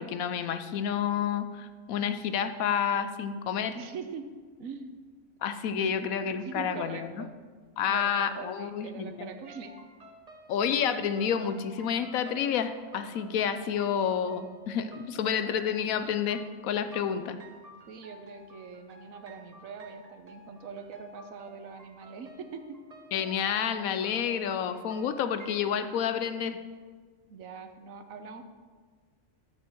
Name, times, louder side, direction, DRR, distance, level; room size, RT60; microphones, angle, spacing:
voice 1, 0.0-3.8 5.4-7.2 7.8-9.3 10.5-17.4 23.1-26.6, left 8 dB, 85° left, 10 dB, 1.1 m, -29 dB
voice 2, 3.7-4.3 4.6-5.0 5.8-6.0 6.3-7.3 7.9-9.7 17.9-22.8 27.3-28.4, right 5 dB, 75° right, 7 dB, 1.3 m, -42 dB
sound 1, 9.4-25.9, right 1 dB, 30° right, 0.9 m, -52 dB
14.0 x 6.5 x 4.5 m, 1.5 s
omnidirectional pair, 1.4 m